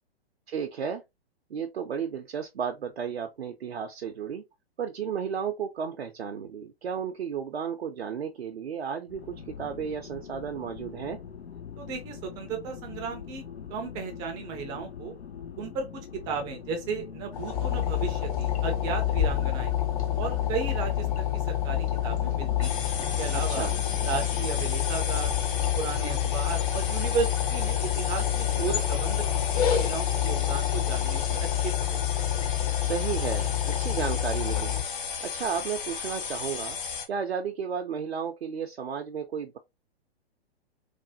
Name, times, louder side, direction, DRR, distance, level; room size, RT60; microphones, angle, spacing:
voice 1, 0.5-1.0 1.5-4.4 4.8-11.2 23.3-23.8 32.8-34.8 35.2-36.8 37.1-39.6, right 7 dB, 70° right, 0.5 m, -33 dB
sound 1, 9.1-24.7, left 7 dB, 85° left, 0.5 m, -43 dB
voice 2, 11.8-13.4 13.7-15.2 15.6-19.7 20.2-23.7 24.0-25.3 25.7-32.2, right 5 dB, 15° right, 0.4 m, -35 dB
sound 2, 17.3-34.8, left 11 dB, 35° left, 0.6 m, -28 dB
sound 3, 22.6-37.1, left 6 dB, 55° left, 0.9 m, -35 dB
3.2 x 2.1 x 2.7 m
figure-of-eight pair, 115°, 32 cm